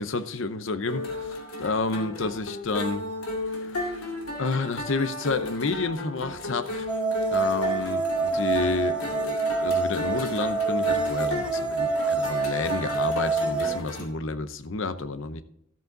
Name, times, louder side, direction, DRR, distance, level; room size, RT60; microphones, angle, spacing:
voice 1, 0.0-3.0 3.5-7.0 7.3-15.4, left 3 dB, 60° left, 12 dB, 0.7 m, -30 dB
sound 1, 0.9-14.1, left 1 dB, 80° left, 2.3 m, -34 dB
sound 2, 6.9-13.8, right 4 dB, 5° right, 0.3 m, -27 dB
13.5 x 7.9 x 3.8 m, 0.73 s
head